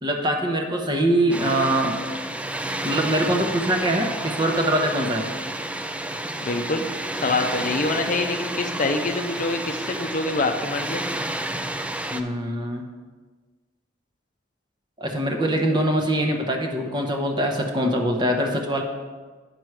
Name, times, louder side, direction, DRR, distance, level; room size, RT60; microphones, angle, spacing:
voice 1, 0.0-2.0 2.8-5.3 12.1-12.8 15.0-18.8, right 1 dB, 25° right, 3 dB, 0.9 m, -23 dB
Water, 1.3-12.2, right 1 dB, 5° right, 0.4 m, -30 dB
voice 2, 6.4-6.9 7.2-11.0, left 3 dB, 45° left, 6 dB, 0.6 m, -25 dB
9.1 x 6.1 x 4.7 m, 1.4 s
head